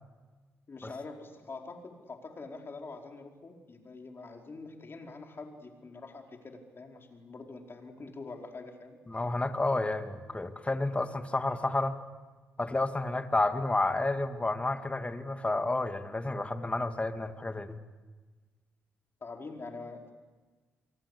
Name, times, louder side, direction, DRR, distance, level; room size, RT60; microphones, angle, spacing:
voice 1, 0.7-9.0 19.2-20.1, left 3 dB, 40° left, 2 dB, 4.9 m, -45 dB
voice 2, 9.1-12.0 12.6-17.8, left 2 dB, 20° left, 8 dB, 2.3 m, -30 dB
26.5 x 23.5 x 8.4 m, 1.3 s
hypercardioid pair, 50°, 6 cm